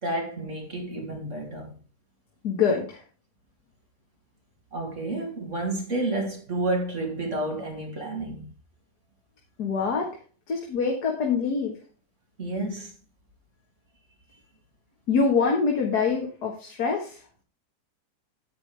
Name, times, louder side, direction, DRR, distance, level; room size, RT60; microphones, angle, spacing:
voice 1, 0.0-1.7 4.7-8.5 12.4-12.9, right 2 dB, 45° right, 3.0 m, -30 dB
voice 2, 2.4-3.0 9.6-10.2 10.5-11.7 15.1-17.2, left 5 dB, 70° left, 2.1 m, -25 dB
9.8 x 9.2 x 3.3 m
omnidirectional pair, 1.8 m